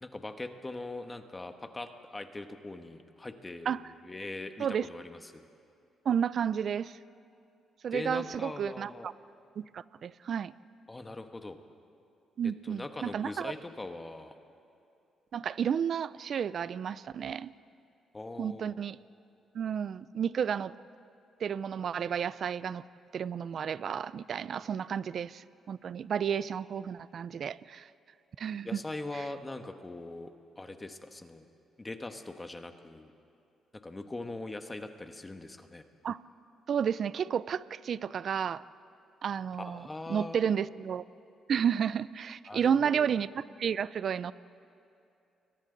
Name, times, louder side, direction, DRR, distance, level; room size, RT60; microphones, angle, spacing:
voice 1, 0.0-5.3 7.9-9.1 10.9-11.6 12.6-14.3 18.1-18.8 24.6-24.7 28.6-30.3 30.6-31.4 31.8-33.1 33.8-35.8 39.6-40.5 42.5-43.1, left 2 dB, 20° left, 7 dB, 1.3 m, -41 dB
voice 2, 6.1-7.0 7.8-9.1 9.6-10.5 12.4-13.5 15.3-17.5 18.4-19.0 19.5-20.7 21.4-22.8 23.1-27.9 28.4-28.7 36.0-36.2 36.7-38.6 39.2-41.0 41.5-44.3, right 8 dB, 55° right, 18 dB, 0.5 m, -32 dB
29.5 x 22.5 x 4.0 m, 2.7 s
cardioid pair, 90°, 0 cm